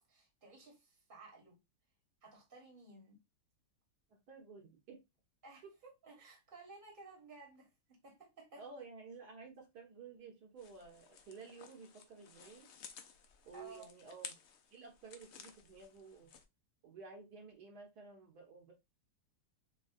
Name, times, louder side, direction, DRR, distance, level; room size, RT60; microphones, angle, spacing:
voice 1, 0.0-1.6 2.2-3.2 5.4-5.6 6.0-8.6 13.5-13.9, right 3 dB, 35° right, 1.1 m, -56 dB
voice 2, 4.1-5.0 5.6-5.9 8.6-12.7 13.4-14.4 14.7-16.3 16.8-18.7, right 4 dB, 65° right, 1.4 m, -53 dB
sound 1, 10.6-16.4, left 6 dB, 75° left, 0.6 m, -55 dB
6.4 x 2.3 x 2.4 m
omnidirectional pair, 1.9 m